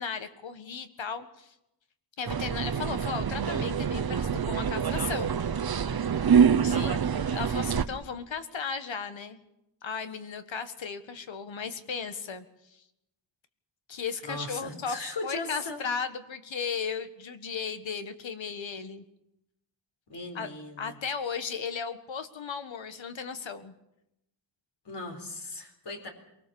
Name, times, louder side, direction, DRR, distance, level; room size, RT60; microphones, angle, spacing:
voice 1, 0.0-1.5 2.2-5.4 6.3-6.4 6.8-7.0 7.3-9.4 9.8-12.5 12.7-12.8 13.9-19.0 20.4-20.5 20.8-23.7, left 6 dB, 85° left, 9 dB, 1.7 m, -35 dB
sound 1, 2.3-7.8, right 7 dB, 55° right, 1.0 m, -26 dB
voice 2, 6.6-7.0 14.2-15.8 20.1-21.0 24.8-26.1, left 2 dB, 65° left, 4 dB, 4.1 m, -38 dB
23.5 x 20.0 x 7.0 m, 0.85 s
wide cardioid pair, 120°, 44 cm